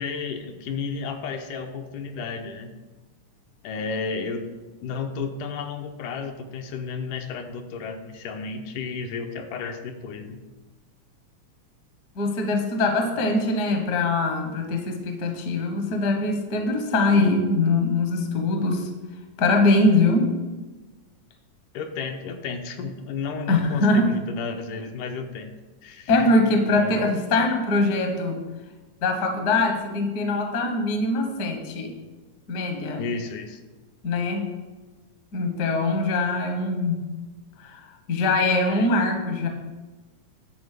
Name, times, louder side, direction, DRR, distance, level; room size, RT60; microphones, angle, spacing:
voice 1, 0.0-2.7 3.6-10.4 21.7-25.5 25.8-26.3 26.7-27.0 33.0-33.6 38.7-38.9, left 5 dB, 80° left, 4 dB, 2.3 m, -33 dB
voice 2, 12.2-18.9 19.4-20.3 23.5-24.1 26.1-28.4 29.0-31.9 32.5-33.0 34.0-34.5 35.3-37.0 37.6-37.8 38.1-39.5, left 2 dB, 60° left, 3 dB, 1.0 m, -22 dB
10.5 x 4.0 x 6.7 m, 1.2 s
omnidirectional pair, 3.6 m